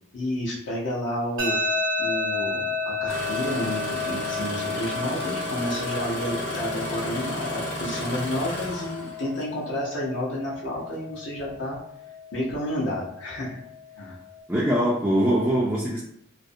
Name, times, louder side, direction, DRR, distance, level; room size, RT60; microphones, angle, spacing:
voice 1, 0.1-1.6 2.0-11.8 12.3-13.5 14.0-14.2, left 1 dB, 65° left, -5 dB, 0.7 m, -30 dB
sound 1, 1.4-14.4, left 3 dB, 75° right, 0.8 m, -32 dB
Engine starting, 3.1-9.5 10.5-10.8 11.4-11.8 12.4-12.5, equal, 90° left, 1.1 m, -33 dB
voice 2, 14.5-16.0, equal, 5° right, -6 dB, 0.3 m, -22 dB
2.5 x 2.0 x 2.6 m, 0.71 s
head